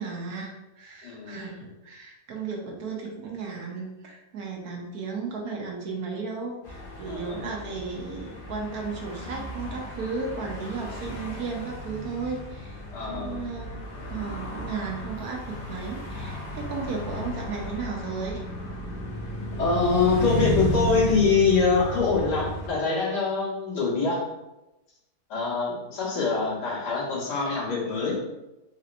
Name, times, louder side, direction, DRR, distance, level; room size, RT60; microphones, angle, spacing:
voice 1, 0.0-12.8 13.1-18.4, right 4 dB, 70° right, 0 dB, 1.2 m, -34 dB
voice 2, 1.0-1.7 7.1-7.4 12.9-13.4 19.6-24.3 25.3-28.2, left 4 dB, 85° left, -6 dB, 1.8 m, -24 dB
sound 1, 6.6-22.7, left 1 dB, 45° left, 0.7 m, -34 dB
4.1 x 2.9 x 2.5 m, 0.97 s
omnidirectional pair, 1.7 m